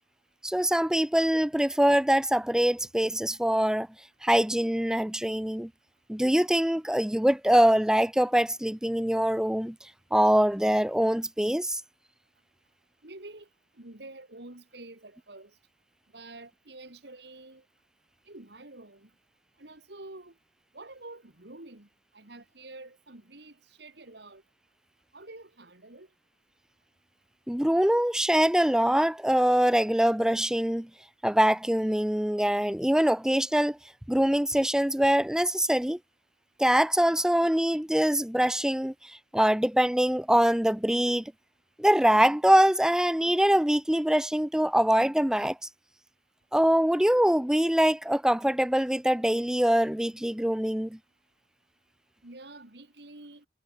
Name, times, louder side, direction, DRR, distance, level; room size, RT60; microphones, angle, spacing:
voice 1, 0.4-3.9 4.2-5.7 6.1-9.8 10.1-11.8 27.5-30.9 31.2-33.8 34.1-36.0 36.6-41.3 41.8-45.6 46.5-51.0, equal, 5° right, 0.5 m, -24 dB
voice 2, 13.0-13.5 13.8-15.5 16.1-17.6 18.3-19.1 19.6-20.3 20.7-21.9 22.1-24.4 25.1-26.1 52.2-53.5, right 2 dB, 70° right, 2.8 m, -47 dB
head